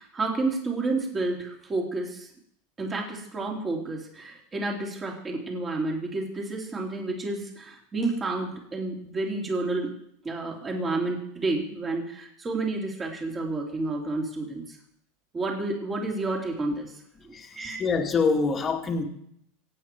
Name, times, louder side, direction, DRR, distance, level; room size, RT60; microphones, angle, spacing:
voice 1, 0.0-2.3 2.8-9.9 10.2-14.8 15.3-16.9 17.2-17.8, right 2 dB, 20° right, 0 dB, 3.6 m, -30 dB
voice 2, 17.3-19.0, left 4 dB, 25° left, 2 dB, 2.3 m, -25 dB
25.5 x 9.0 x 4.7 m, 0.70 s
supercardioid pair, 140°, 0 cm